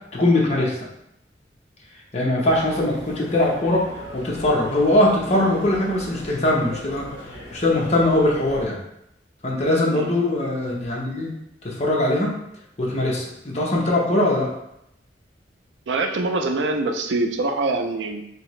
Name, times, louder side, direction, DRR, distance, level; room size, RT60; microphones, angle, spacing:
voice 1, 0.1-0.8 2.1-3.9 4.1-7.1 7.5-8.8 9.4-11.3 11.6-12.3 12.8-14.5, left 1 dB, 40° left, -3 dB, 0.8 m, -21 dB
sound 1, 2.5-8.6, left 1 dB, 75° left, 0.9 m, -40 dB
voice 2, 15.9-18.2, right 2 dB, 90° right, 5 dB, 0.4 m, -24 dB
3.2 x 2.8 x 3.1 m, 0.81 s
head